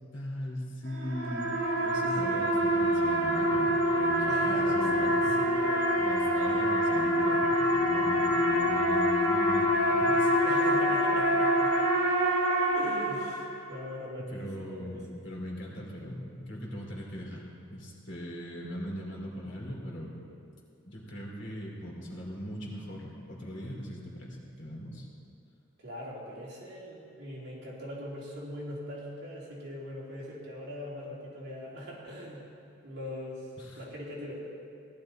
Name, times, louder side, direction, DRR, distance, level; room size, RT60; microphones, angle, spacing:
voice 1, 0.1-5.4 6.0-10.4 14.2-20.2 20.9-25.1 33.6-33.8, equal, 55° left, -2 dB, 2.8 m, -39 dB
sound 1, 0.9-13.7, equal, 80° right, 2.2 m, -26 dB
voice 2, 2.1-2.5 4.3-5.0 5.3-5.8 6.5-6.7 7.5-7.7 10.4-11.7 12.7-15.3 25.8-32.4 32.8-33.5 33.8-34.5, equal, 50° right, -6 dB, 3.3 m, -41 dB
17.5 x 11.5 x 4.3 m, 2.5 s
head